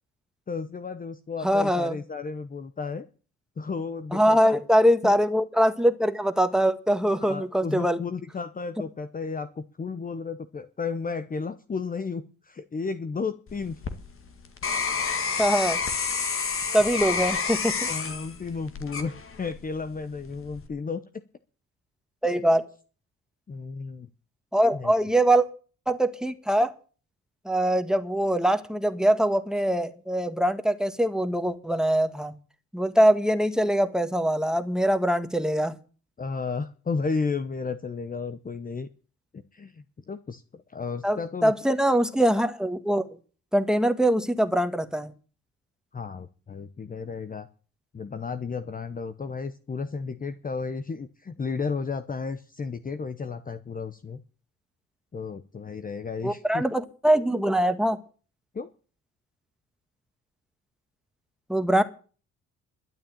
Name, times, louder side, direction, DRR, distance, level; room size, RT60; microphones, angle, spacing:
voice 1, 0.5-3.1 3.6-4.6 5.0-5.1 7.2-13.8 17.9-21.2 23.5-24.1 24.7-24.9 36.2-38.9 39.3-41.5 45.9-47.5 47.9-54.2 55.1-56.6 58.5-58.7, left 4 dB, 30° left, 11 dB, 0.9 m, -33 dB
voice 2, 1.4-1.9 4.1-8.0 15.4-15.8 16.7-17.9 22.2-22.6 24.5-25.4 25.9-26.7 27.4-32.3 32.7-35.8 41.0-43.1 43.5-45.1 56.2-58.0 61.5-61.8, right 1 dB, ahead, 9 dB, 1.7 m, -23 dB
sound 1, 13.5-19.7 20.2-20.7, left 5 dB, 45° left, 2.0 m, -29 dB
12.5 x 8.7 x 8.9 m, 0.39 s
cardioid pair, 90°, 30 cm